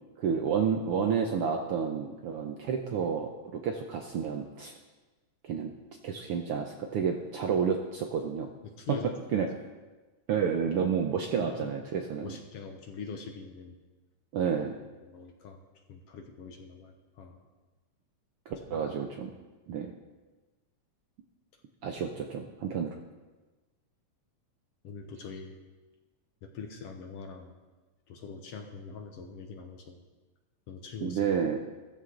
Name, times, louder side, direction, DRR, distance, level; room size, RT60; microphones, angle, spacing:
voice 1, 0.2-4.7 5.4-5.7 6.0-8.5 8.9-9.0 9.3-9.5 10.3-12.4 14.3-14.7 18.5-19.3 19.7-19.9 21.8-22.9 31.0-31.6, right 7 dB, 70° right, 3 dB, 1.4 m, -30 dB
voice 2, 8.6-9.7 11.4-11.8 12.2-13.7 15.0-15.6 15.9-17.4 18.6-18.8 24.8-25.6 26.4-27.5 28.1-30.0 30.7-31.3, left 5 dB, 65° left, 4 dB, 1.8 m, -43 dB
14.5 x 14.5 x 3.9 m, 1.2 s
omnidirectional pair, 3.4 m